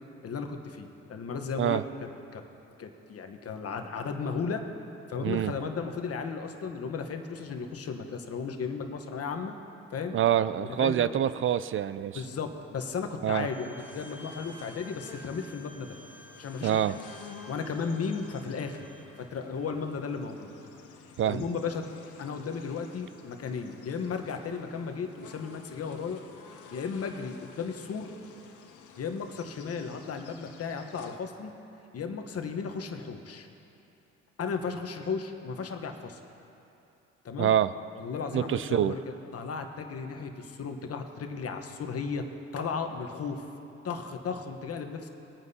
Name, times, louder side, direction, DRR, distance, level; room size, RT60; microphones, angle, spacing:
voice 1, 0.2-2.4 2.8-4.6 5.1-9.5 9.9-10.2 10.8-11.2 12.1-16.0 16.4-17.0 17.5-18.9 19.2-20.5 21.3-21.9 22.2-26.2 26.7-28.1 29.0-31.5 31.9-33.5 34.4-36.2 37.2-37.5 37.9-42.3 42.5-43.4 43.8-45.1, left 5 dB, 50° left, 5 dB, 1.1 m, -35 dB
voice 2, 5.2-5.5 10.1-12.2 13.2-13.5 16.6-17.0 21.2-21.4 37.4-37.7 38.3-38.9, right 10 dB, 45° right, 15 dB, 0.4 m, -26 dB
Bowed string instrument, 13.3-19.1, right 1 dB, 15° left, 2.6 m, -53 dB
sound 1, 13.8-31.2, left 6 dB, 70° left, 0.9 m, -51 dB
19.5 x 9.3 x 2.8 m, 2.8 s
supercardioid pair, 65°, 31 cm